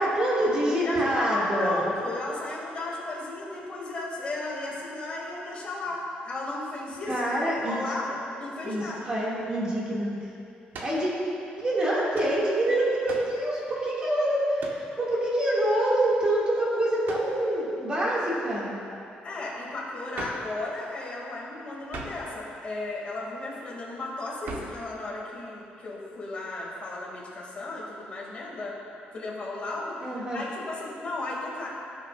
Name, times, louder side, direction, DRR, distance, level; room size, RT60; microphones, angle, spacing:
voice 1, 0.0-1.8 7.1-7.8 8.6-8.8 9.1-10.1 10.8-11.1 11.6-18.7 30.0-30.4, right 1 dB, 25° right, -6 dB, 2.2 m, -26 dB
voice 2, 0.8-8.1 8.4-9.1 19.2-28.7 29.1-29.9 30.3-31.7, left 2 dB, 35° left, -4 dB, 2.3 m, -34 dB
sound 1, 10.7-11.0 12.1-12.4 13.1-13.4 14.6-14.9 17.0-17.4 20.1-20.5 21.9-22.3 24.4-24.8, right 2 dB, 70° right, 1.2 m, -38 dB
16.5 x 6.7 x 2.5 m, 2.6 s
cardioid pair, 140°, 3 cm